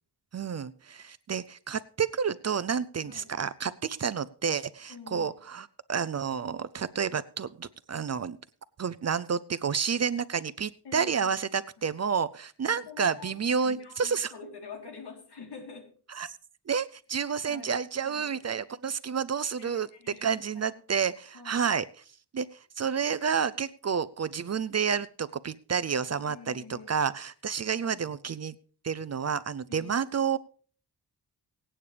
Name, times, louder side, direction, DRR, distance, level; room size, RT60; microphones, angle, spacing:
voice 1, 0.3-8.4 8.8-14.3 16.2-16.4 16.7-19.9 20.2-21.9 22.3-22.5 22.8-28.5 28.8-30.4, right 6 dB, 40° right, 16 dB, 0.5 m, -30 dB
voice 2, 3.0-3.4 4.9-5.4 10.8-11.4 11.8-11.9 12.6-15.9 17.5-17.8 18.0-18.4 19.6-20.8 21.3-21.7 26.2-27.1 27.6-28.1 29.7-30.0, left 5 dB, 75° left, 3 dB, 3.5 m, -47 dB
24.0 x 8.7 x 3.3 m, 0.43 s
wide cardioid pair, 100°, 40 cm